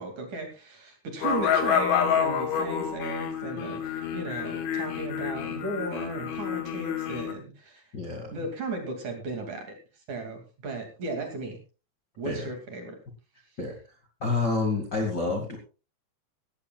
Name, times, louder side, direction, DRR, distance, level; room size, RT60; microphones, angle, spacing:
voice 1, 0.0-7.8 8.3-9.7 10.1-11.6 12.2-13.0, right 2 dB, 45° right, 3 dB, 3.4 m, -35 dB
sound 1, 1.2-7.3, left 8 dB, 75° left, 4.0 m, -28 dB
voice 2, 7.9-8.3 12.2-12.5 13.6-13.7 14.2-15.6, left 3 dB, 40° left, 2 dB, 1.6 m, -28 dB
17.5 x 15.0 x 2.4 m, 0.32 s
omnidirectional pair, 5.5 m